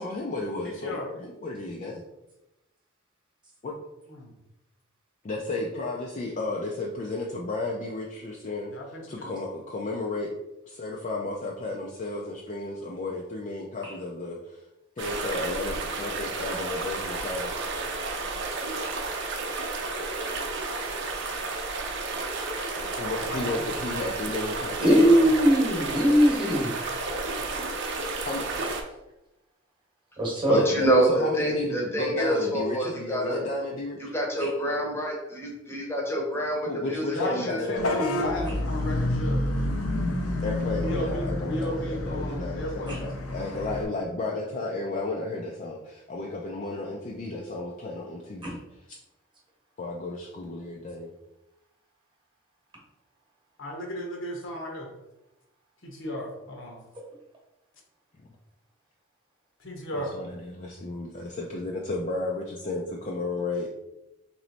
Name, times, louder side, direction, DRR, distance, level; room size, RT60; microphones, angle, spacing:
voice 1, 0.0-2.0 3.6-3.8 5.2-8.7 9.1-10.3 10.7-14.6 15.0-17.7 23.0-25.2 27.4-27.5 28.2-28.5 30.5-34.1 36.6-38.3 40.4-48.6 49.8-51.1 60.1-63.7, left 2 dB, 35° left, -2 dB, 0.4 m, -33 dB
voice 2, 0.6-1.1 4.1-4.3 8.7-9.3 22.8-23.8 24.8-25.4 30.5-30.7 37.1-39.4 40.8-43.1 44.5-44.6 53.6-54.9 55.8-56.8 59.6-60.2, left 1 dB, 65° left, 1 dB, 0.9 m, -35 dB
sound 1, 15.0-28.8, right 3 dB, 55° right, 0.6 m, -32 dB
voice 3, 24.8-26.7 30.2-30.6 34.4-34.5 42.9-43.0 48.4-48.5, equal, 20° right, -2 dB, 1.0 m, -20 dB
voice 4, 30.5-33.4 34.0-37.0 37.5-37.6, right 1 dB, 10° left, -2 dB, 0.8 m, -26 dB
Vehicle horn car horn honking / Bus, 37.8-43.8, left 1 dB, 90° left, 0.6 m, -29 dB
3.0 x 3.0 x 4.0 m, 0.92 s
head